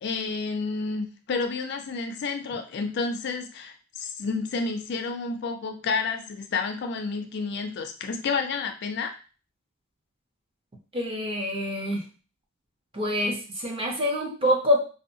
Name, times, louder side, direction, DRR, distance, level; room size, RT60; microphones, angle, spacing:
voice 1, 0.0-9.1, left 4 dB, 50° left, 6 dB, 0.3 m, -30 dB
voice 2, 10.9-12.0 12.9-14.9, left 1 dB, 25° right, 0 dB, 0.5 m, -26 dB
2.7 x 2.2 x 2.6 m, 0.36 s
head